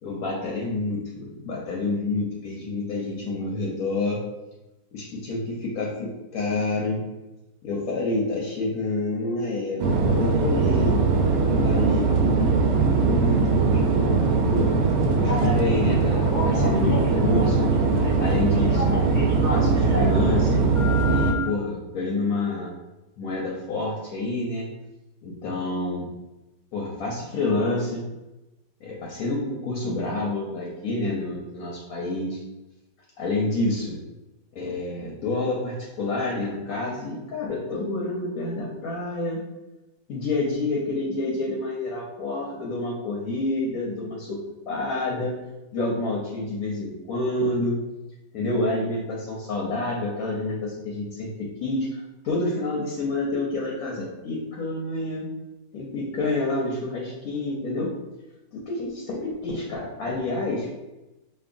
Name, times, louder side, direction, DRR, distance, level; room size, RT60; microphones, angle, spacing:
voice 1, 0.0-4.2 4.9-7.0 7.6-11.0 11.4-12.0 12.9-13.4 13.7-14.7 15.2-17.7 18.2-19.0 19.5-20.7 21.0-22.7 23.2-24.7 25.2-26.1 26.7-28.0 28.8-32.4 33.2-34.0 34.5-39.4 40.1-45.4 45.7-47.8 48.3-55.3 55.7-57.9 58.5-60.7, left 2 dB, 65° left, -3 dB, 1.1 m, -28 dB
sound 1, 9.8-21.3, right 4 dB, 85° right, 1.2 m, -21 dB
Telephone, 15.2-15.6 16.1-17.7 18.0-20.2 20.7-21.5, left 1 dB, 15° left, 0.6 m, -32 dB
5.2 x 2.4 x 2.5 m, 1.0 s
omnidirectional pair, 1.8 m